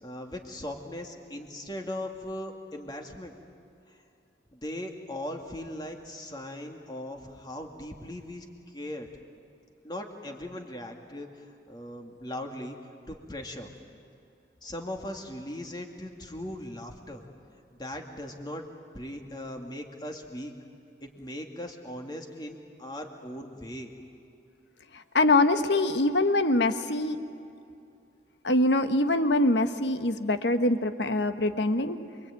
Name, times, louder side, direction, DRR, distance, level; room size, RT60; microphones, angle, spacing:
voice 1, 0.0-3.3 3.9-4.0 4.5-9.1 9.8-12.8 13.1-13.7 14.6-17.3 17.8-18.7 18.9-20.5 21.0-23.9, left 1 dB, 25° left, 3 dB, 2.4 m, -39 dB
voice 2, 25.1-27.2 28.4-32.0, left 2 dB, 80° left, 9 dB, 1.4 m, -24 dB
28.0 x 23.0 x 9.2 m, 2.6 s
head